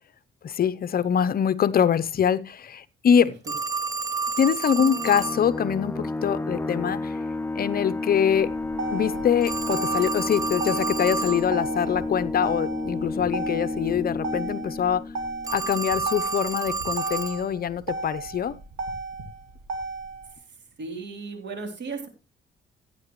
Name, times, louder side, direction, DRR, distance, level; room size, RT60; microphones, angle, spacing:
voice 1, 0.4-3.4 4.4-7.2 7.5-8.5 8.9-15.0 15.5-18.5, left 8 dB, 50° left, 0.7 m, -24 dB
Telephone, 3.5-5.4 9.4-11.5 15.4-17.4, right 4 dB, 15° right, 0.9 m, -30 dB
sound 1, 4.8-16.1, left 2 dB, 10° left, 0.5 m, -31 dB
Motor vehicle (road), 8.3-20.3, right 3 dB, 90° right, 2.6 m, -35 dB
voice 2, 20.8-22.1, right 4 dB, 60° right, 3.2 m, -35 dB
16.0 x 8.9 x 3.1 m
cardioid pair, 90°, 20 cm